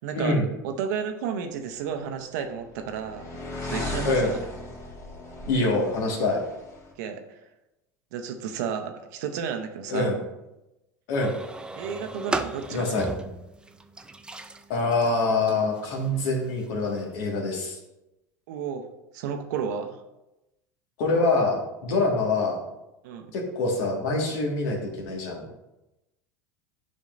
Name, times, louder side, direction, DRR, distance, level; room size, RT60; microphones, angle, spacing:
voice 1, 0.0-3.3 3.6-4.4 7.0-7.4 8.1-10.2 11.8-12.9 18.5-18.8 19.1-20.0 23.0-23.3, right 7 dB, 70° right, 6 dB, 0.8 m, -32 dB
sound 1, 2.0-6.9, left 2 dB, 30° left, 1.8 m, -37 dB
voice 2, 5.5-6.4 9.9-10.2 11.1-11.3 12.7-13.0 14.7-17.8 21.0-22.6 23.3-25.4, left 2 dB, 65° left, 0 dB, 1.8 m, -25 dB
sound 2, 11.2-17.4, right 2 dB, 10° right, 0.4 m, -37 dB
8.5 x 5.4 x 2.6 m, 0.96 s
hypercardioid pair, 90°, 10 cm